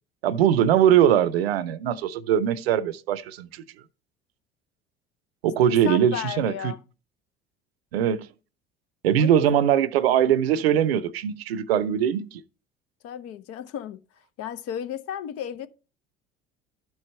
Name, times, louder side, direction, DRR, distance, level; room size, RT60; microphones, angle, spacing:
voice 1, 0.2-3.6 5.4-6.7 7.9-8.3 9.0-12.4, right 9 dB, 80° right, 0.6 m, -21 dB
voice 2, 5.8-6.8 9.1-9.5 13.0-14.0 14.4-15.7, left 10 dB, 50° left, 0.8 m, -34 dB
12.0 x 4.7 x 4.2 m
hypercardioid pair, 65°, 30 cm